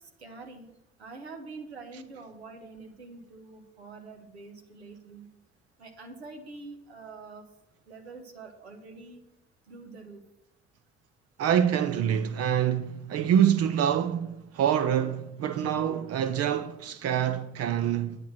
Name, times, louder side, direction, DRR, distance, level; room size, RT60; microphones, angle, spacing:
voice 1, 0.2-0.7 1.0-5.3 5.8-7.5 7.9-9.2 9.7-10.2, right 3 dB, 85° right, 1.3 m, -45 dB
voice 2, 11.4-18.2, right 9 dB, 50° right, 0.7 m, -26 dB
9.4 x 8.0 x 6.0 m
figure-of-eight pair, 50°, 32 cm